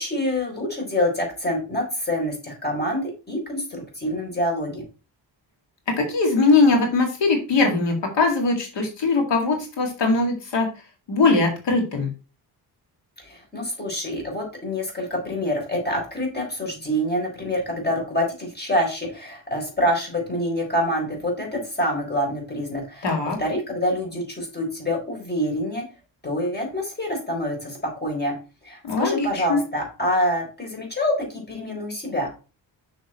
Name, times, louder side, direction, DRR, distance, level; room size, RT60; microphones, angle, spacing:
voice 1, 0.0-4.8 13.2-25.8 26.2-28.3 28.6-32.3, equal, 25° left, 0 dB, 4.0 m, -26 dB
voice 2, 5.9-10.7 11.1-12.1 23.0-23.4 28.8-29.6, left 3 dB, 85° left, 2 dB, 2.2 m, -21 dB
6.5 x 6.4 x 4.2 m, 0.33 s
wide cardioid pair, 130°, 42 cm